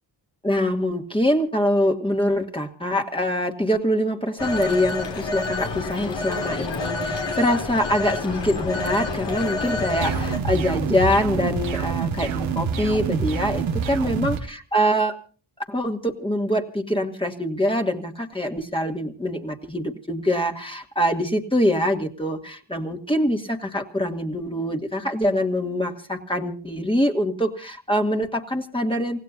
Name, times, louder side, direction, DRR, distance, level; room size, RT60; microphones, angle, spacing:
voice 1, 0.4-15.2 15.7-29.2, equal, 10° left, 3 dB, 2.3 m, -24 dB
Telephone, 4.4-10.4, left 3 dB, 65° left, 3.3 m, -28 dB
sound 1, 10.0-14.4, right 6 dB, 85° right, 1.6 m, -26 dB
29.0 x 16.0 x 2.7 m, 0.39 s
cardioid pair, 60°, 46 cm